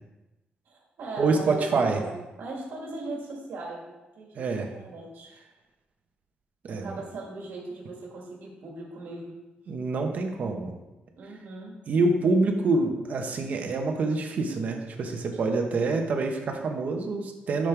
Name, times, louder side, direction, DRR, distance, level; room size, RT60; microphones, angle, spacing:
voice 1, 0.7-4.5 4.7-5.3 6.7-9.4 11.2-11.7, right 2 dB, 85° right, -3 dB, 1.9 m, -38 dB
voice 2, 1.2-2.0 4.3-4.7 6.7-7.0 9.7-10.7 11.9-17.7, right 3 dB, 50° right, 3 dB, 1.1 m, -26 dB
10.5 x 6.5 x 3.4 m, 1.0 s
wide cardioid pair, 170°, 3 cm